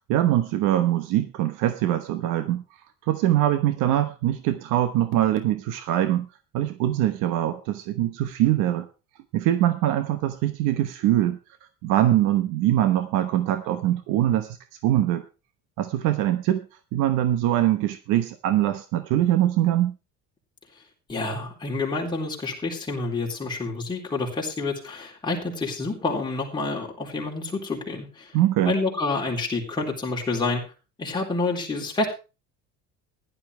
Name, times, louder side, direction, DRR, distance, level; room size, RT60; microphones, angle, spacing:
voice 1, 0.0-2.6 3.1-6.3 6.5-8.9 9.3-11.4 11.8-14.6 14.8-15.2 15.8-16.7 16.9-19.9 28.3-28.8, right 13 dB, 80° right, 10 dB, 1.1 m, -23 dB
voice 2, 21.1-28.3 28.7-30.6 31.0-32.1, left 3 dB, 15° left, -2 dB, 3.9 m, -28 dB
15.5 x 11.5 x 3.3 m, 0.30 s
cardioid pair, 150°, 31 cm